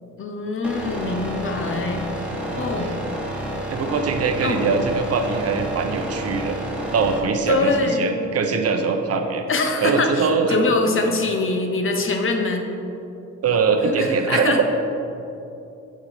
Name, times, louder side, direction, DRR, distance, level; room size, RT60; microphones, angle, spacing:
voice 1, 0.2-2.9 4.4-4.8 7.5-8.2 9.5-12.7 13.8-14.6, left 3 dB, 45° left, 4 dB, 1.0 m, -24 dB
sound 1, 0.6-7.2, right 1 dB, 5° right, 1.5 m, -30 dB
voice 2, 2.5-2.9 3.7-6.6 6.9-9.4 9.8-10.6 11.1-11.2 13.4-14.6, right 5 dB, 55° right, 5 dB, 0.8 m, -22 dB
7.7 x 5.8 x 5.0 m, 2.8 s
cardioid pair, 90°, 30 cm